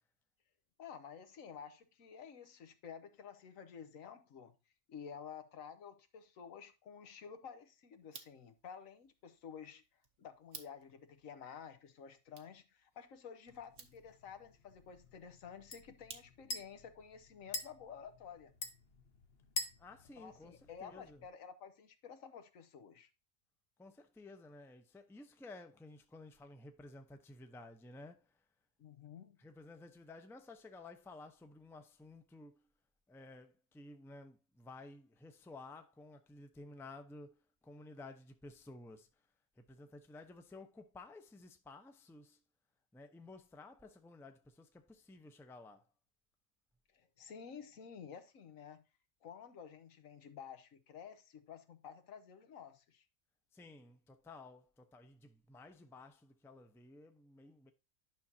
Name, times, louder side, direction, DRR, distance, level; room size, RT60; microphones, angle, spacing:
voice 1, 0.8-4.5 4.9-9.8 10.2-18.5 20.2-23.1 28.8-29.4 46.9-48.9 49.2-53.0, left 7 dB, 80° left, 1.3 m, -52 dB
sound 1, 8.0-16.7, right 6 dB, 70° right, 1.3 m, -59 dB
sound 2, 13.5-21.3, left 2 dB, 50° left, 1.1 m, -48 dB
voice 2, 19.8-21.2 23.8-28.4 29.4-32.7 33.1-39.1 39.6-42.4 42.9-45.8 53.5-57.7, left 2 dB, 5° left, 0.5 m, -54 dB
10.0 x 6.0 x 2.7 m
omnidirectional pair, 1.4 m